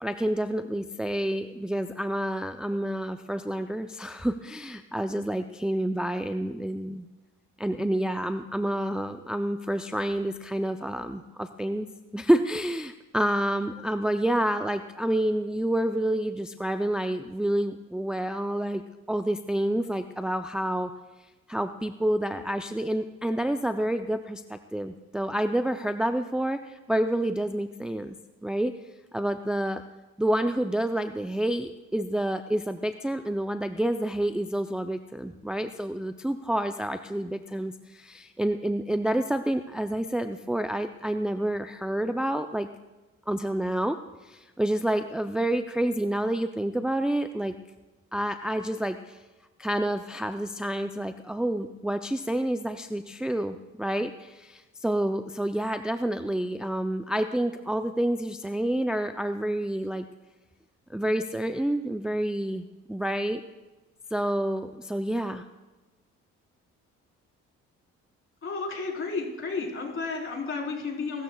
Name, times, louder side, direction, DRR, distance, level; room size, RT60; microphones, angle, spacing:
voice 1, 0.0-7.1 7.6-11.9 12.1-18.8 19.1-20.9 21.5-28.2 28.4-28.8 29.1-29.8 30.2-42.7 43.3-47.5 48.1-49.2 49.6-60.1 60.9-63.4 64.1-65.4, right 1 dB, 5° right, 8 dB, 0.5 m, -28 dB
voice 2, 68.4-71.2, left 4 dB, 40° left, -1 dB, 4.1 m, -32 dB
22.0 x 13.0 x 2.3 m, 1.2 s
supercardioid pair, 75°, 31 cm